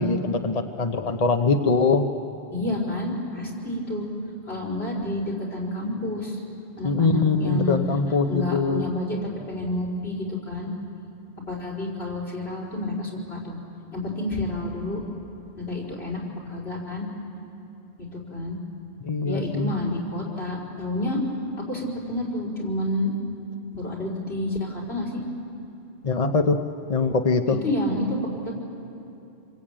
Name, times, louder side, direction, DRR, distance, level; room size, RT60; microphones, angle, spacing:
voice 1, 0.0-2.1 6.8-8.9 19.0-19.8 26.0-26.6 26.9-27.6, left 4 dB, 40° left, 5 dB, 0.9 m, -22 dB
voice 2, 2.5-4.1 4.5-6.4 6.8-7.8 8.3-9.2 9.5-10.7 11.5-13.6 13.9-15.0 15.6-17.0 18.0-18.6 19.3-21.2 21.6-23.1 23.7-25.2 27.6-28.5, left 1 dB, 80° left, -3 dB, 4.9 m, -29 dB
27.5 x 22.0 x 8.9 m, 2.8 s
omnidirectional pair, 1.1 m